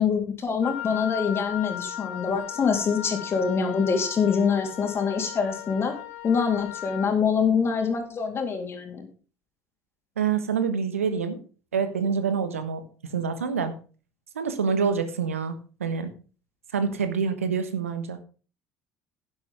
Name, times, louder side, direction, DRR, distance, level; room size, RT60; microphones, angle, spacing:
voice 1, 0.0-5.9 6.2-9.1, left 6 dB, 35° left, 4 dB, 3.3 m, -25 dB
Wind instrument woodwind instrument, 0.6-7.1, left 12 dB, 70° left, 1.6 m, -37 dB
voice 2, 10.2-11.4 11.7-12.8 13.1-13.7 14.3-16.1 16.7-18.2, right 6 dB, 80° right, 10 dB, 1.3 m, -26 dB
11.5 x 10.5 x 3.7 m, 0.37 s
figure-of-eight pair, 65°, 7 cm